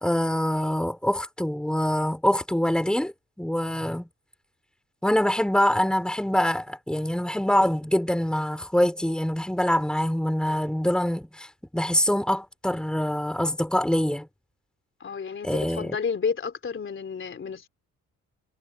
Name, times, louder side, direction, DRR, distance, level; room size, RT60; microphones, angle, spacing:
voice 1, 0.0-4.1 5.0-11.5 11.7-14.3 15.4-16.0, left 1 dB, 5° left, 3.4 m, -24 dB
voice 2, 15.0-17.7, left 6 dB, 40° left, 3.4 m, -31 dB
cardioid pair, 90°, 30 cm